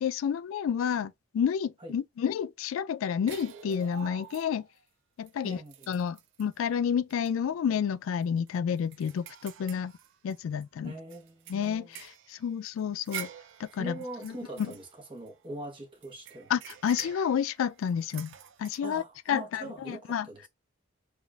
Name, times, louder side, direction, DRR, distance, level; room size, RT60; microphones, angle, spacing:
voice 1, 0.0-4.6 5.2-5.6 5.9-9.9 10.2-10.9 11.5-13.3 13.6-14.0 14.2-14.3 14.6-14.7 16.5-18.3 18.6-19.0 19.3-20.3, left 7 dB, 80° left, 0.3 m, -30 dB
sound 1, 3.3-4.8 5.3-5.4 5.7-6.6 7.1-7.3 7.7-7.8 8.2-10.6 11.1-15.6 16.0-18.8, right 9 dB, 65° right, 0.4 m, -47 dB
voice 2, 5.4-6.0 10.8-11.9 13.8-16.5 18.8-20.5, right 1 dB, 25° right, 0.9 m, -42 dB
5.0 x 2.4 x 2.2 m
head